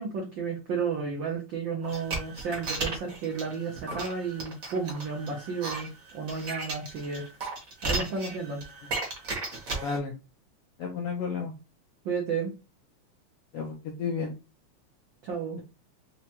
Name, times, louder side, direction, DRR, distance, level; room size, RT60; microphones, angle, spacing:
voice 1, 0.0-7.2 7.8-8.6 12.0-12.5 15.2-15.6, right 5 dB, 80° right, -1 dB, 1.0 m, -32 dB
sound 1, 1.8-10.0, right 3 dB, 55° right, 0.9 m, -35 dB
voice 2, 9.8-10.1 10.8-11.5 13.5-14.3, left 5 dB, 75° left, 1 dB, 1.3 m, -32 dB
4.9 x 2.2 x 2.9 m, 0.28 s
omnidirectional pair, 3.4 m